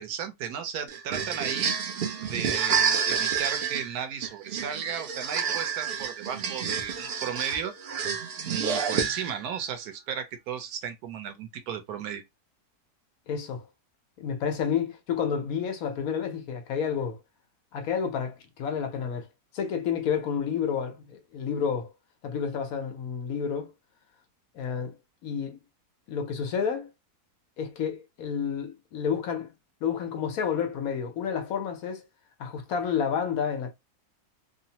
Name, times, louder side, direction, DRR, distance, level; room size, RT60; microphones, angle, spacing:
voice 1, 0.0-1.7 2.3-7.7 8.5-12.2, right 8 dB, 85° right, 1.2 m, -35 dB
sound 1, 0.9-9.5, right 7 dB, 65° right, 0.6 m, -29 dB
voice 2, 13.3-13.7 14.2-17.2 17.7-19.3 19.5-21.9 22.2-23.7 24.5-25.0 25.2-25.6 26.1-26.9 27.6-29.5 29.8-32.0 32.4-33.7, left 7 dB, 70° left, 1.1 m, -30 dB
3.1 x 2.0 x 2.8 m
omnidirectional pair, 1.6 m